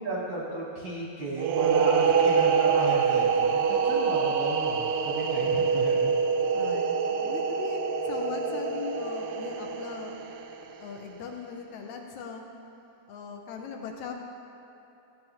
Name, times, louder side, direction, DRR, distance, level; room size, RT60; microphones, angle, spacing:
voice 1, 0.0-6.1, right 2 dB, 60° right, -6 dB, 1.2 m, -33 dB
sound 1, 1.4-10.9, right 6 dB, 80° right, 1.6 m, -25 dB
voice 2, 5.4-5.8 6.5-10.2 10.8-12.4 13.1-14.1, left 6 dB, 80° left, 2 dB, 1.9 m, -39 dB
14.5 x 7.7 x 3.0 m, 2.9 s
omnidirectional pair, 3.6 m